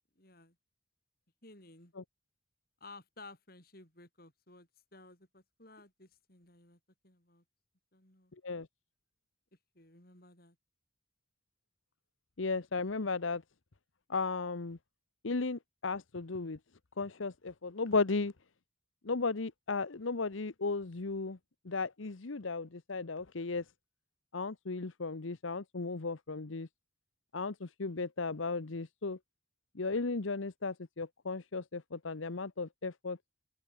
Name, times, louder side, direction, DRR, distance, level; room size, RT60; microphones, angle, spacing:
voice 1, 0.2-0.6 1.4-1.9 2.8-7.4 7.9-8.3 9.7-10.6, left 2 dB, 50° left, 5.8 m, -56 dB
voice 2, 12.4-13.4 14.1-14.8 15.2-16.6 17.0-18.3 19.0-21.4 21.6-23.6 24.3-26.7 27.3-29.2 29.7-33.2, left 3 dB, 85° left, 1.0 m, -35 dB
open air
head